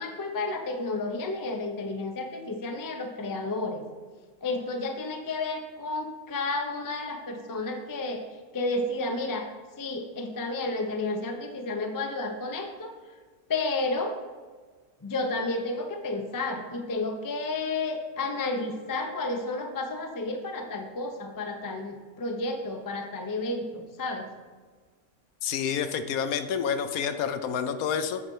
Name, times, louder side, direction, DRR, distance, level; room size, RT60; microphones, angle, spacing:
voice 1, 0.0-3.8 4.4-8.2 8.5-9.5 9.8-12.9 13.5-14.2 15.0-24.3, left 2 dB, 25° left, 4 dB, 0.4 m, -31 dB
voice 2, 25.4-28.2, left 7 dB, 75° left, 9 dB, 1.0 m, -28 dB
8.7 x 4.3 x 5.3 m, 1.5 s
omnidirectional pair, 1.6 m